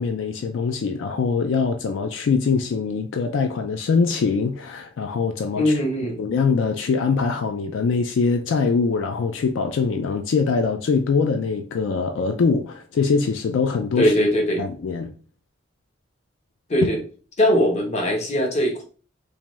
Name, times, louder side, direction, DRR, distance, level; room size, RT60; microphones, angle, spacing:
voice 1, 0.0-5.7 6.2-14.1 14.6-15.1, left 5 dB, 80° left, 0.4 m, -23 dB
voice 2, 5.5-6.2 14.0-14.6 16.7-17.0 17.4-18.8, equal, 35° left, 0.8 m, -20 dB
3.5 x 2.6 x 3.0 m
head